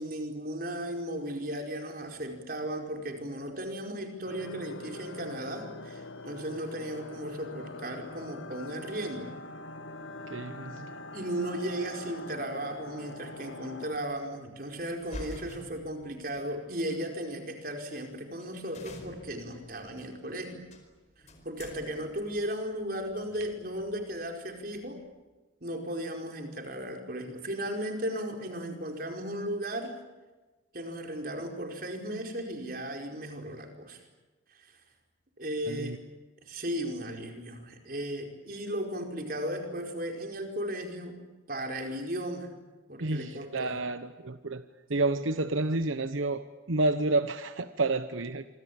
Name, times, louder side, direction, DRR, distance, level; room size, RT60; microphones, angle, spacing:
voice 1, 0.0-9.3 11.1-20.6 21.4-25.0 25.6-30.0 30.7-34.0 34.5-34.7 35.4-36.0 36.5-41.2 41.5-42.5 42.9-43.7, right 1 dB, 45° right, 3 dB, 4.9 m, -36 dB
sound 1, 4.3-14.0, left 2 dB, 80° left, 1.7 m, -43 dB
voice 2, 10.3-10.9 35.7-36.0 43.0-44.6 44.9-48.5, right 2 dB, 90° right, 10 dB, 1.1 m, -30 dB
sound 2, 14.9-16.5 17.3-17.4 18.0-18.1 18.3-18.4 18.7-25.1, left 1 dB, 35° left, 4.8 m, -48 dB
27.0 x 25.0 x 8.7 m, 1.2 s
head